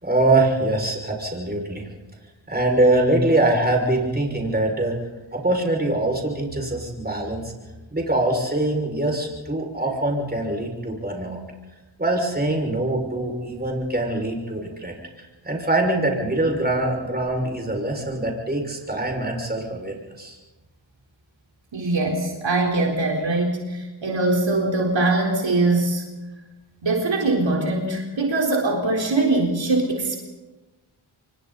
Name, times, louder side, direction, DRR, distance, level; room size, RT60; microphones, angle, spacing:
voice 1, 0.0-1.9 2.5-4.9 5.3-7.5 7.9-11.4 12.0-20.4, right 2 dB, 20° right, 1 dB, 6.2 m, -23 dB
voice 2, 21.7-26.0 26.8-30.2, right 2 dB, 65° right, 0 dB, 4.3 m, -22 dB
27.0 x 24.0 x 4.2 m, 1.1 s
cardioid pair, 55°, 48 cm